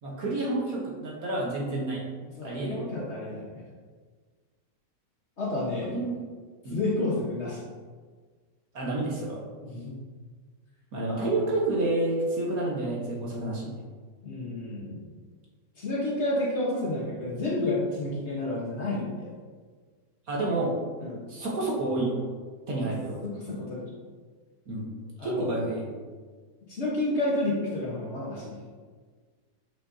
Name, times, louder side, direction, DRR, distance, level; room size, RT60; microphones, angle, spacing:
voice 1, 0.0-2.0 2.4-2.8 5.9-6.1 6.6-6.8 8.7-9.4 10.9-13.7 20.3-20.7 21.3-22.2 22.7-23.2 24.7-24.9 25.2-25.9, right 2 dB, 55° right, -3 dB, 1.6 m, -29 dB
voice 2, 2.4-3.6 5.4-5.9 6.7-7.6 9.6-10.0 11.0-11.3 14.2-15.1 15.8-19.3 21.0-21.2 23.2-23.9 25.2-25.6 26.7-28.6, left 2 dB, 40° left, -5 dB, 1.4 m, -30 dB
8.4 x 5.5 x 2.8 m, 1.5 s
omnidirectional pair, 1.9 m